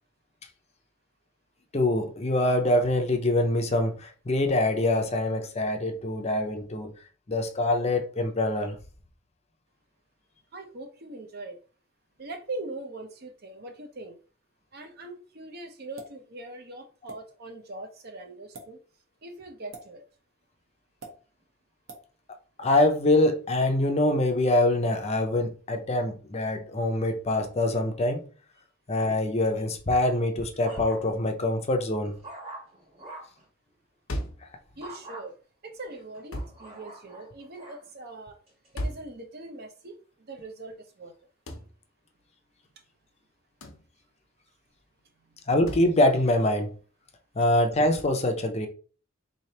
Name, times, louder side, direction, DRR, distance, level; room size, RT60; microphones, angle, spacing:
voice 1, 1.7-6.9 7.3-8.8 22.6-28.3 28.9-32.1 45.5-46.7 47.4-48.7, left 1 dB, 30° left, 0.5 m, -24 dB
voice 2, 10.5-11.6 12.2-14.2 14.7-18.8 19.2-20.0 34.8-35.3 35.6-38.4 38.7-41.1 45.3-45.4, right 2 dB, 50° right, 0.7 m, -41 dB
sound 1, 16.0-16.2 17.1-17.2 18.4-18.7 19.7-19.9 21.0-21.2 21.9-22.1, right 3 dB, 75° right, 1.1 m, -43 dB
sound 2, 29.9-31.3 31.8-33.4 34.8-35.2 35.9-37.8 38.5-38.8, right 2 dB, 30° right, 1.3 m, -45 dB
Bathtub hits impacts cantaloupe melon head, 34.1-34.5 36.3-36.6 38.8-39.1 41.5-41.7 43.6-43.9 45.7-45.9, equal, 85° left, 0.8 m, -34 dB
4.1 x 3.2 x 2.8 m
head